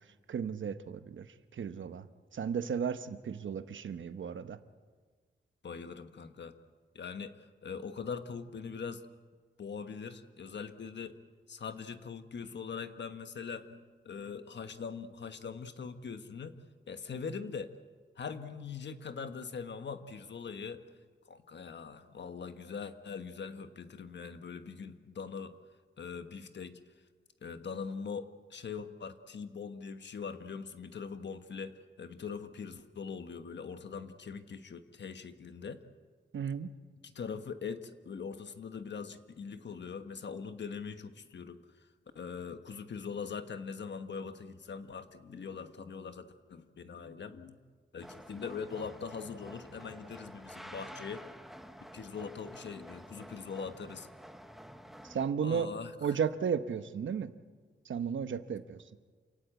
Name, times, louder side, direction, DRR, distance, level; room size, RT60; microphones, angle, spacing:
voice 1, 0.3-1.3 1.5-2.1 2.3-4.6 36.3-36.7 55.0-55.7 56.0-57.3 57.9-58.8, right 7 dB, 85° right, 11 dB, 1.0 m, -34 dB
voice 2, 5.6-6.6 6.9-9.0 9.6-11.2 11.5-16.5 16.9-17.7 18.2-20.8 21.3-25.6 26.0-26.8 27.4-35.8 37.0-41.6 42.1-47.6 47.9-51.2 51.9-54.1 55.4-56.2, left 5 dB, 70° left, 9 dB, 1.3 m, -42 dB
sound 1, 48.0-55.3, equal, ahead, 1.0 m, -50 dB
28.0 x 18.0 x 8.2 m, 1.5 s
wide cardioid pair, 165°, 19 cm